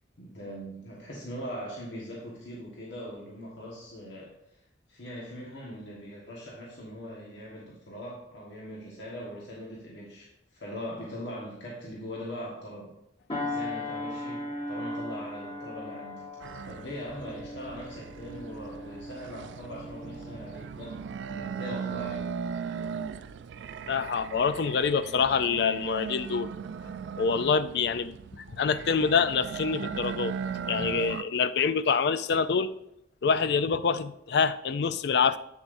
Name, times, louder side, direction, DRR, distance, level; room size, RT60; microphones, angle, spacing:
voice 1, 0.2-4.6 4.9-12.9 13.4-16.3 16.6-22.3, equal, 85° left, -4 dB, 1.5 m, -41 dB
sound 1, 13.3-22.1 22.6-22.8, left 1 dB, 30° left, 1.2 m, -39 dB
sound 2, 16.4-31.2, right 6 dB, 75° right, 0.3 m, -38 dB
voice 2, 23.9-26.5 27.2-30.4 30.7-32.7 33.2-35.4, left 5 dB, 65° left, 13 dB, 0.4 m, -26 dB
8.1 x 7.0 x 2.6 m, 0.79 s
head